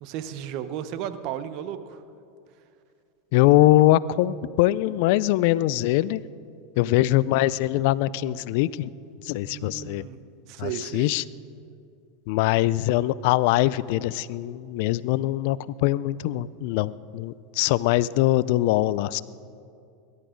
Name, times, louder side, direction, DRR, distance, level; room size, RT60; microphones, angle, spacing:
voice 1, 0.0-2.0 6.7-7.2 9.4-10.2 10.5-11.1, right 10 dB, 55° right, 11 dB, 0.9 m, -35 dB
voice 2, 3.3-6.2 6.8-8.9 9.2-10.1 10.6-11.2 12.3-19.2, left 16 dB, 65° left, 20 dB, 0.4 m, -22 dB
21.0 x 11.5 x 5.1 m, 2.5 s
hypercardioid pair, 100°, 0 cm